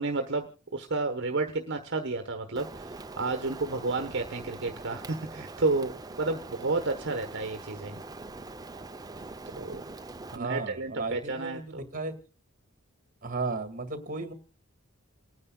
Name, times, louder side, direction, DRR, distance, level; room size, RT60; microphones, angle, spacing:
voice 1, 0.0-8.0 9.6-9.8 10.3-11.8, right 3 dB, 55° right, 5 dB, 1.1 m, -31 dB
Rain, 2.6-10.4, right 3 dB, 20° right, 0.6 m, -43 dB
voice 2, 10.3-12.1 13.2-14.3, right 3 dB, 40° right, 8 dB, 2.0 m, -34 dB
28.5 x 9.7 x 2.3 m, 0.36 s
head